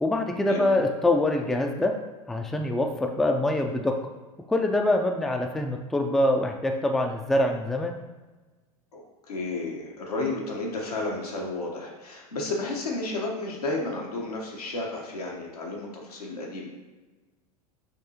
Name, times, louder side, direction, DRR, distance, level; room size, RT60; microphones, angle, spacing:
voice 1, 0.0-1.9 2.3-3.9 4.5-7.9, left 1 dB, ahead, 3 dB, 0.3 m, -24 dB
voice 2, 9.3-16.7, left 2 dB, 85° left, -2 dB, 1.0 m, -32 dB
5.7 x 2.7 x 2.8 m, 1.2 s
hypercardioid pair, 90°, 19 cm